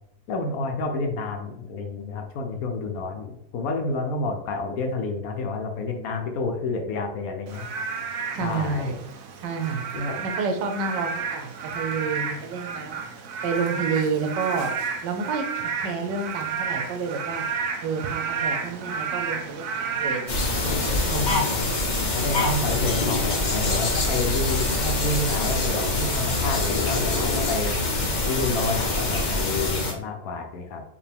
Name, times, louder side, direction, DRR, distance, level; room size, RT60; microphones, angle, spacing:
voice 1, 0.3-7.7 8.4-8.9 9.9-10.2 21.5-21.7 22.0-27.8 28.3-30.8, left 3 dB, 65° left, 3 dB, 1.0 m, -29 dB
Frog / Rain, 7.5-20.9, right 5 dB, 70° right, 0.8 m, -31 dB
voice 2, 8.3-8.9 9.4-9.8 10.2-13.2 13.4-14.7 15.0-17.4 17.8-20.5 21.1-21.4, right 4 dB, 85° right, 5 dB, 1.3 m, -29 dB
sound 1, 20.3-29.9, left 2 dB, 50° left, 0.5 m, -25 dB
5.0 x 2.6 x 3.4 m, 0.77 s
omnidirectional pair, 1.9 m